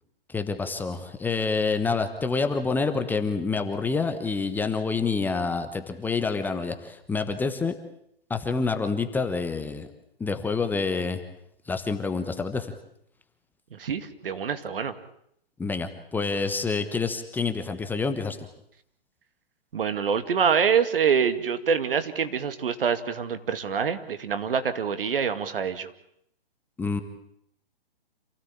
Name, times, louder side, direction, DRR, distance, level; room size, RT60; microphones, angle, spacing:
voice 1, 0.3-7.7 8.3-9.9 10.2-11.2 11.7-12.7 15.6-18.5 26.8-27.0, left 4 dB, 5° left, 7 dB, 1.1 m, -27 dB
voice 2, 13.7-14.9 19.7-25.9, right 7 dB, 65° right, 10 dB, 2.3 m, -25 dB
27.5 x 17.0 x 8.6 m, 0.72 s
hypercardioid pair, 140°, 30 cm